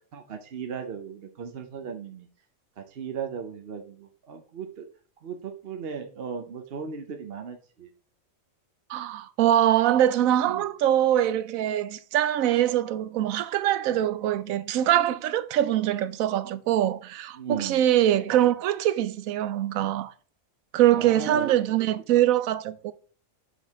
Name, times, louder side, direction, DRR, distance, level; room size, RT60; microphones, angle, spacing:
voice 1, 0.1-2.3 2.8-4.9 5.2-7.9 10.4-10.7 17.3-17.8 20.9-21.5, right 6 dB, 50° right, 0.9 m, -36 dB
voice 2, 8.9-20.1 20.7-22.9, right 12 dB, 80° right, 1.0 m, -23 dB
7.2 x 6.1 x 3.5 m
omnidirectional pair, 1.4 m